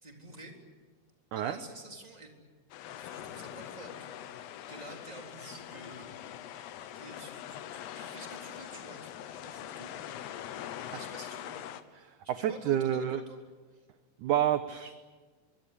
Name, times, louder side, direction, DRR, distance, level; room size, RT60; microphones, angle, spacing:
voice 1, 0.0-0.6 1.3-2.3 2.9-4.2 4.7-6.1 6.9-9.9 10.8-11.6 12.2-13.4 13.7-13.8, right 2 dB, 10° right, 1 dB, 3.4 m, -49 dB
sound 1, 2.7-11.8, left 11 dB, 85° left, 3.2 m, -43 dB
voice 2, 12.3-13.2 14.2-15.2, right 10 dB, 70° right, 9 dB, 2.0 m, -29 dB
25.0 x 24.5 x 8.4 m, 1.4 s
omnidirectional pair, 4.6 m